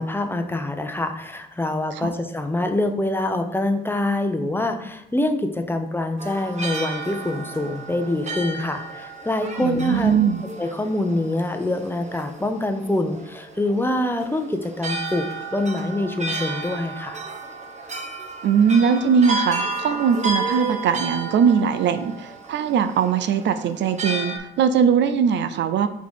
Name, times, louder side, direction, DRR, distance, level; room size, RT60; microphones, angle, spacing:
voice 1, 0.0-10.1 10.6-17.2, left 1 dB, 10° left, 6 dB, 0.7 m, -25 dB
sound 1, 6.2-24.4, right 3 dB, 35° right, 1.1 m, -32 dB
voice 2, 9.6-10.4 18.4-25.9, right 7 dB, 65° right, 11 dB, 0.5 m, -20 dB
5.1 x 3.9 x 5.0 m, 0.85 s
cardioid pair, 90°, 20 cm